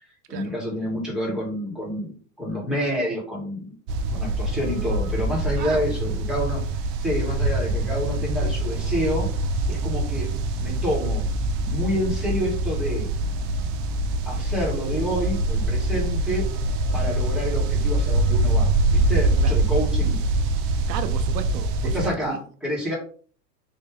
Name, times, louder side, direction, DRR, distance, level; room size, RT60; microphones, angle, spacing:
voice 1, 0.0-3.7 4.1-6.6 7.0-9.3 9.7-10.3 10.6-11.2 11.6-13.1 14.2-16.4 16.9-20.2 21.9-23.0, equal, ahead, -4 dB, 1.7 m, -28 dB
sound 1, 3.9-22.1, right 2 dB, 40° right, 0.5 m, -24 dB
voice 2, 5.6-6.0 10.1-10.4 16.9-17.2 19.4-19.6 20.9-22.4, right 8 dB, 90° right, 8 dB, 0.6 m, -34 dB
3.3 x 2.6 x 3.4 m, 0.44 s
hypercardioid pair, 110°, 48 cm